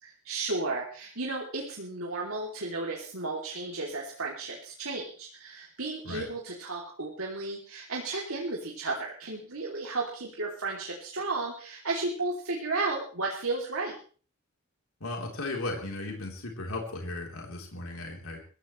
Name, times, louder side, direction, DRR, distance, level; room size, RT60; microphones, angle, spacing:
voice 1, 0.0-13.9, right 3 dB, 75° right, -3 dB, 3.1 m, -33 dB
voice 2, 15.0-18.4, left 2 dB, 80° left, 0 dB, 3.9 m, -36 dB
23.0 x 15.5 x 3.3 m, 0.42 s
head